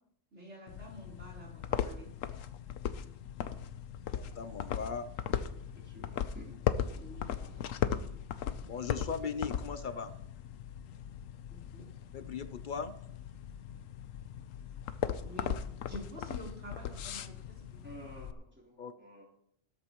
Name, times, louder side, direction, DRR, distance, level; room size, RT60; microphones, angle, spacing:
voice 1, 0.3-2.1 7.0-7.3 11.7-11.8 15.2-15.6 15.9-17.7, right 1 dB, 60° right, -3 dB, 4.0 m, -48 dB
sound 1, 0.7-18.3, left 9 dB, 85° left, 1.1 m, -38 dB
voice 2, 4.1-5.1 8.7-10.2 12.1-12.9 18.8-18.9, left 5 dB, 55° left, 12 dB, 0.6 m, -38 dB
voice 3, 5.6-7.1 7.3-7.7 17.8-19.3, right 1 dB, 10° right, -3 dB, 3.3 m, -53 dB
14.5 x 13.0 x 3.0 m, 0.70 s
omnidirectional pair, 1.3 m